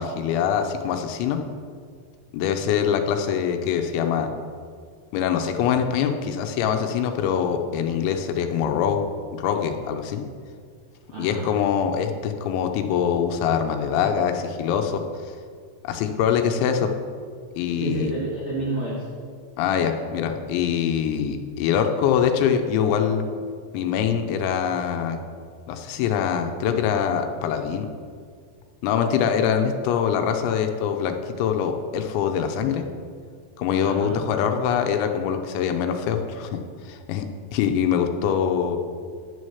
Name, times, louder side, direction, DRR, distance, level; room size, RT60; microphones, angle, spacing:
voice 1, 0.0-1.4 2.3-4.3 5.1-9.0 9.4-10.2 11.2-15.0 15.8-16.9 17.6-18.1 19.6-23.3 23.7-25.2 25.7-27.9 28.8-32.9 33.6-36.6 36.8-38.8, left 8 dB, 85° left, 6 dB, 3.1 m, -24 dB
voice 2, 11.1-11.6 17.8-19.1 26.6-26.8 33.8-34.2, right 2 dB, 50° right, -5 dB, 1.5 m, -30 dB
11.0 x 6.5 x 7.0 m, 2.1 s
omnidirectional pair, 5.4 m